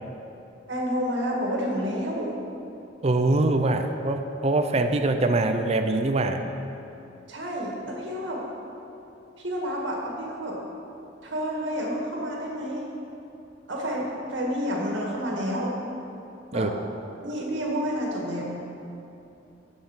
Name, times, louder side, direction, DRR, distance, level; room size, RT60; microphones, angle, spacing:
voice 1, 0.7-2.3 7.3-8.4 9.4-10.6 11.2-12.9 13.7-15.7 16.5-16.7 17.2-18.4, equal, 80° right, -2 dB, 1.9 m, -29 dB
voice 2, 3.0-6.4 16.5-16.7, right 2 dB, 35° right, 6 dB, 0.5 m, -23 dB
7.5 x 7.0 x 7.3 m, 2.8 s
head